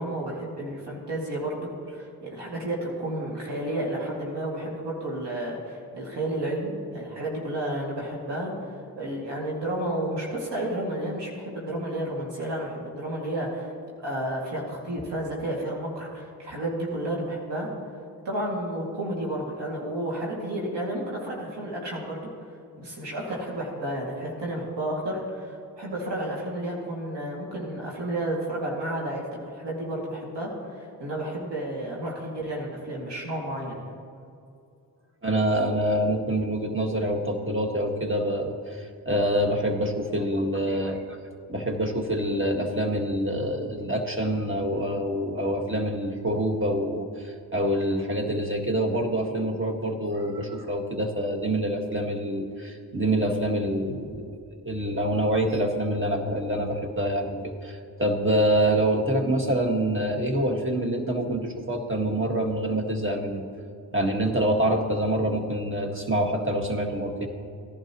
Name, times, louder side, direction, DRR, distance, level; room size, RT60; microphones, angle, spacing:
voice 1, 0.0-8.7 9.0-13.7 14.0-17.7 18.2-22.3 22.8-29.3 29.5-34.0, right 1 dB, 70° right, -4 dB, 2.5 m, -31 dB
voice 2, 35.2-41.2 41.5-54.3 54.6-63.4 63.9-67.3, right 1 dB, 30° right, 2 dB, 1.8 m, -26 dB
16.5 x 11.0 x 3.1 m, 2.5 s
cardioid pair, 45°, 43 cm